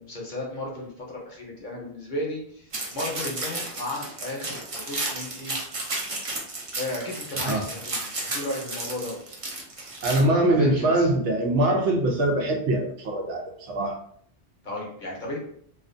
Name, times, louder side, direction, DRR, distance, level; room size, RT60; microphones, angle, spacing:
voice 1, 0.0-5.5 6.8-9.4 10.5-11.1 14.6-15.4, left 1 dB, 50° left, -2 dB, 0.7 m, -34 dB
sound 1, 2.7-10.2, right 2 dB, 45° right, 0.5 m, -33 dB
voice 2, 10.0-14.0, right 1 dB, 85° right, 3 dB, 0.9 m, -23 dB
2.4 x 2.3 x 2.5 m, 0.65 s
omnidirectional pair, 1.2 m